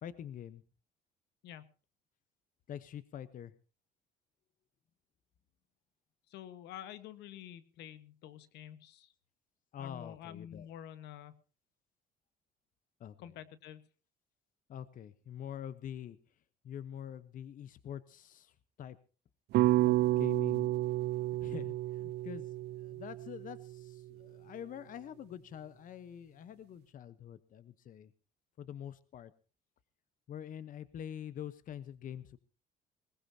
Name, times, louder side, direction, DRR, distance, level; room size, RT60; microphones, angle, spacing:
voice 1, 0.0-0.6 2.7-3.5 9.7-10.7 13.0-13.3 14.7-16.2 16.6-19.0 19.8-20.7 21.4-28.1 28.6-29.3 30.3-32.4, left 9 dB, 55° left, 14 dB, 1.0 m, -45 dB
voice 2, 6.3-9.1 9.8-11.4 13.2-13.9, left 10 dB, 85° left, 13 dB, 1.4 m, -48 dB
sound 1, 19.5-23.8, right 16 dB, 75° right, 0.7 m, -30 dB
20.5 x 19.0 x 2.8 m, 0.35 s
cardioid pair, 110°, 17 cm